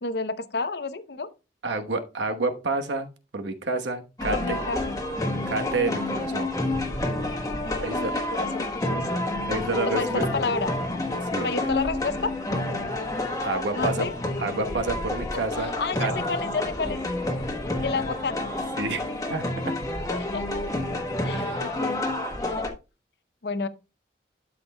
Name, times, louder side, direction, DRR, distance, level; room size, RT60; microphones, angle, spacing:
voice 1, 0.0-1.3 4.3-5.0 7.6-9.3 9.9-10.7 11.4-12.3 13.8-14.1 15.6-17.0 17.8-18.5 20.1-20.7 21.2-22.0 22.4-22.7 23.4-23.7, left 4 dB, 65° left, 0.7 m, -31 dB
voice 2, 1.6-3.1 3.3-4.6 5.5-6.5 7.8-8.1 9.5-10.3 11.3-11.5 13.4-14.1 14.4-15.7 16.0-16.1 18.8-19.0 19.3-19.4 21.3-21.6, right 3 dB, 90° right, 1.1 m, -29 dB
sound 1, 4.2-22.7, left 1 dB, 20° left, 1.1 m, -29 dB
12.5 x 5.8 x 2.2 m
head